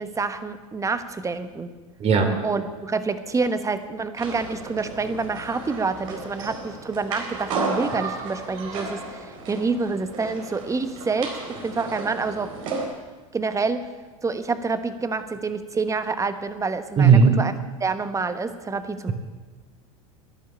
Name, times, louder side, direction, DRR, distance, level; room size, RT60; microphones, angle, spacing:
voice 1, 0.0-1.7 2.4-11.4 11.6-12.5 13.3-13.8 14.2-17.5 17.8-19.1, right 4 dB, 20° right, 11 dB, 1.3 m, -27 dB
voice 2, 2.0-2.3 17.0-17.3, right 6 dB, 40° right, 5 dB, 2.9 m, -15 dB
sound 1, 4.2-12.9, right 3 dB, 75° right, 4.3 m, -33 dB
12.0 x 11.0 x 8.7 m, 1.4 s
hypercardioid pair, 95°, 17 cm